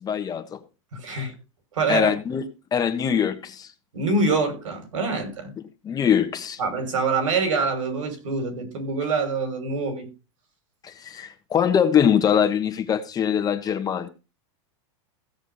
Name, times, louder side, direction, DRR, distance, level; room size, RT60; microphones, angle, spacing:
voice 1, 0.0-0.6 1.9-2.4 2.7-3.7 5.8-6.6 10.8-14.1, left 8 dB, 25° left, 1.4 m, -22 dB
voice 2, 0.9-1.3 1.7-2.1 3.9-5.5 6.6-10.1, right 4 dB, 85° right, 6.2 m, -25 dB
16.0 x 7.2 x 4.1 m
supercardioid pair, 130°, 16 cm